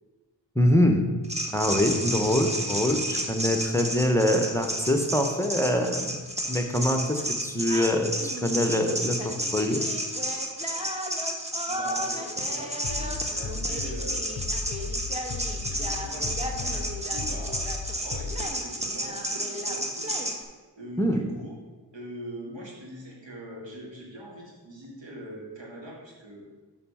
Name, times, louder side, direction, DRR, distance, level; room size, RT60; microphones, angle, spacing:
voice 1, 0.5-1.0 1.5-6.2 6.5-8.1 8.4-9.8 21.0-21.2, left 1 dB, 5° left, 4 dB, 0.8 m, -24 dB
sound 1, 1.2-20.4, right 1 dB, 15° right, 1.2 m, -31 dB
voice 2, 4.1-4.7 11.6-14.3 15.0-17.6 18.0-20.1 20.8-21.6 21.9-26.4, right 1 dB, 80° right, -3 dB, 2.4 m, -42 dB
Bass drum, 12.8-18.4, left 4 dB, 45° left, 0.6 m, -35 dB
6.7 x 6.2 x 5.6 m, 1.3 s
wide cardioid pair, 65°, 43 cm